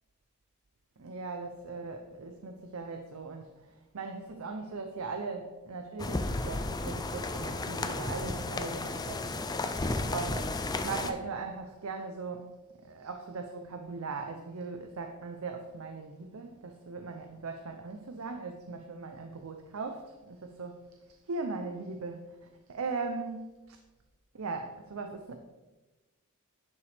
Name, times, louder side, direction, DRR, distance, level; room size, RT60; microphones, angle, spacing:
voice 1, 1.0-9.4 10.1-12.6 12.8-20.8 21.3-22.4 22.7-23.8 24.3-25.4, right 4 dB, 85° right, 5 dB, 0.6 m, -39 dB
sound 1, 6.0-11.1, left 2 dB, 20° left, 0.4 m, -33 dB
10.5 x 5.7 x 3.4 m, 1.1 s
head